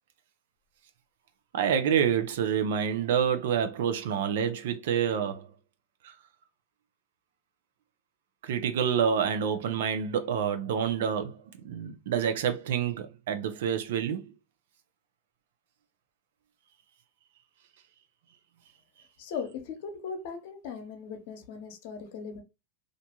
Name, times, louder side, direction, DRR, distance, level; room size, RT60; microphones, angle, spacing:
voice 1, 1.5-5.5 6.0-6.1 8.4-14.3, right 8 dB, 75° right, 0.5 m, -28 dB
voice 2, 19.2-22.4, left 6 dB, 65° left, 0.8 m, -38 dB
2.5 x 2.3 x 2.8 m
hypercardioid pair, 115°, 0 cm